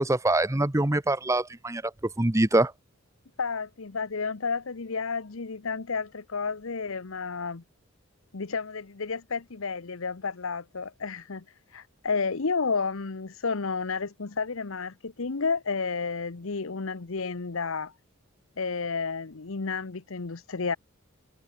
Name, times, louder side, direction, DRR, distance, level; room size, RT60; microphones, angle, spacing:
voice 1, 0.0-1.8 2.2-2.7, right 2 dB, 15° right, 0.7 m, -24 dB
voice 2, 3.4-7.6 8.3-11.4 11.7-17.9 18.6-20.8, left 4 dB, 75° left, 0.9 m, -31 dB
head